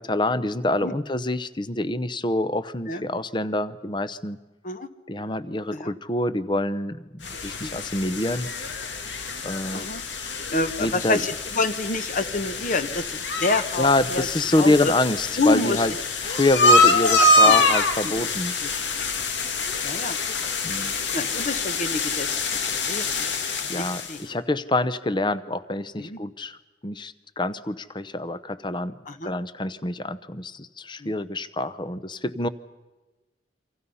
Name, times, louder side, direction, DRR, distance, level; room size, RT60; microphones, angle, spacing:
voice 1, 0.0-4.4 5.1-8.5 9.4-10.4 10.8-11.2 13.8-15.9 16.2-18.5 20.6-20.9 23.7-26.6 26.8-32.5, left 1 dB, 25° left, 14 dB, 0.8 m, -26 dB
sound 1, 7.2-24.2, left 2 dB, 75° left, 1.9 m, -25 dB
voice 2, 9.7-10.0 10.5-14.3 14.6-14.8 15.4-15.8 17.4-17.7 18.0-18.1 18.6-18.7 19.8-20.2 21.1-22.5 22.9-23.3 23.7-24.2 26.0-26.2 29.1-29.3 31.0-31.1, left 2 dB, 45° left, 10 dB, 1.3 m, -27 dB
28.5 x 25.5 x 5.6 m, 1.2 s
head